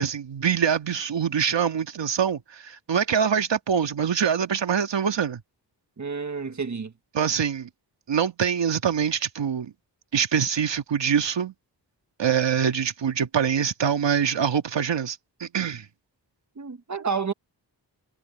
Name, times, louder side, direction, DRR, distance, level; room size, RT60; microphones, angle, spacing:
voice 1, 0.0-5.4 7.1-7.7 8.1-9.7 10.1-11.5 12.2-15.9, right 7 dB, 85° right, 2.0 m, -24 dB
voice 2, 6.0-6.9 16.6-17.3, right 5 dB, 40° right, 1.6 m, -30 dB
wide cardioid pair, 95°, 42 cm